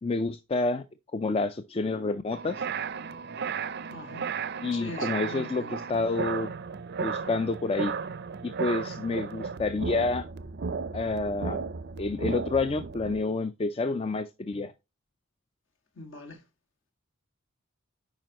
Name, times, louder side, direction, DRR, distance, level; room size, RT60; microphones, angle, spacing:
voice 1, 0.0-0.8 1.1-2.6 4.6-6.5 7.0-7.9 8.4-10.3 10.9-11.7 12.0-14.7, left 3 dB, 25° left, 0.3 m, -29 dB
sound 1, 2.3-13.2, right 5 dB, 50° right, 0.5 m, -34 dB
voice 2, 3.9-4.2 4.7-5.7 15.9-16.4, left 2 dB, 65° left, 1.8 m, -42 dB
9.0 x 5.0 x 2.9 m
head